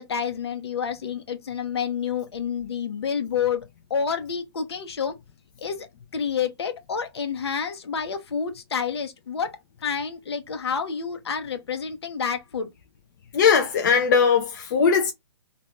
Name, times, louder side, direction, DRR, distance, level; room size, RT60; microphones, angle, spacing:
voice 1, 0.0-5.2 5.6-5.9 6.1-12.7, left 6 dB, 70° left, 0.9 m, -29 dB
voice 2, 13.3-15.1, left 6 dB, 45° left, 0.5 m, -19 dB
2.6 x 2.2 x 3.2 m
hypercardioid pair, 150°, 14 cm